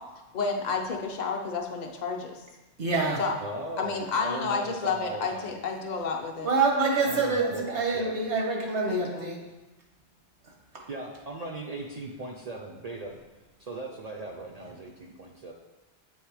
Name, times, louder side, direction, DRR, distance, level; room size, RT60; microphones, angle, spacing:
voice 1, 0.3-2.4 3.2-3.3 3.8-6.5 8.9-9.4, left 4 dB, 50° left, 1 dB, 0.6 m, -30 dB
voice 2, 2.8-3.2 6.4-9.4, right 3 dB, 85° right, -1 dB, 1.5 m, -26 dB
voice 3, 3.4-5.5 7.1-8.1 10.9-13.2 13.6-15.5, right 2 dB, 50° right, 1 dB, 0.5 m, -38 dB
7.1 x 3.3 x 4.8 m, 1.1 s
omnidirectional pair, 1.1 m